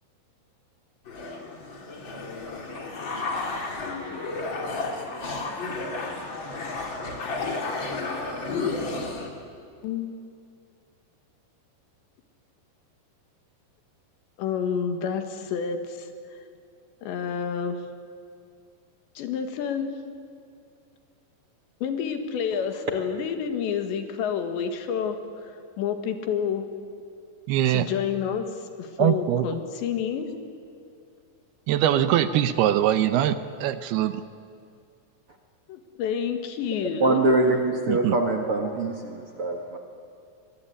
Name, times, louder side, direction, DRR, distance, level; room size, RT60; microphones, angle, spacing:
sound 1, 1.1-9.3, left 3 dB, 30° left, 2.9 m, -32 dB
voice 1, 14.4-16.1 16.4-16.5 17.0-17.8 19.2-19.9 21.8-26.7 27.7-30.3 35.7-37.2, left 7 dB, 85° left, 7 dB, 4.1 m, -29 dB
voice 2, 27.5-27.9 29.0-29.5 31.7-34.1 37.9-38.2, right 11 dB, 75° right, 12 dB, 2.6 m, -22 dB
voice 3, 37.0-39.8, right 2 dB, 50° right, 3 dB, 1.8 m, -24 dB
25.5 x 22.0 x 9.9 m, 2.4 s
omnidirectional pair, 5.0 m